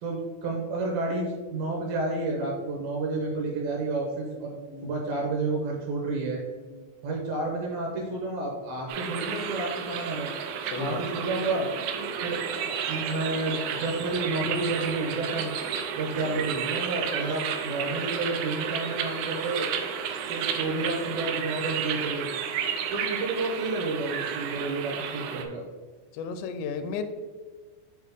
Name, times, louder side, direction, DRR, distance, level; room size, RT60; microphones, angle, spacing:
voice 1, 0.0-4.5 4.8-6.4 7.0-10.3 10.8-11.7 12.2-15.5 16.0-19.7 20.3-22.3 22.9-25.6, right 2 dB, 75° right, -1 dB, 2.3 m, -30 dB
sound 1, 8.9-25.4, right 7 dB, 90° right, 2.1 m, -32 dB
voice 2, 10.7-11.1 26.1-27.0, left 6 dB, 85° left, 8 dB, 2.7 m, -34 dB
8.4 x 3.8 x 3.5 m, 1.4 s
omnidirectional pair, 5.1 m